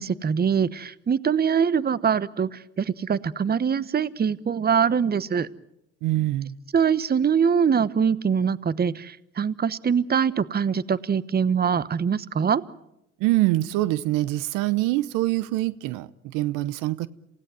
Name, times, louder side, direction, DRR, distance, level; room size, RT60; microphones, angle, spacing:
voice 1, 0.0-5.5 6.7-12.6, right 7 dB, 30° right, 18 dB, 1.0 m, -23 dB
voice 2, 6.0-6.6 13.2-17.1, right 17 dB, 70° right, 18 dB, 0.9 m, -24 dB
28.0 x 17.5 x 9.2 m, 0.85 s
hypercardioid pair, 65°, 32 cm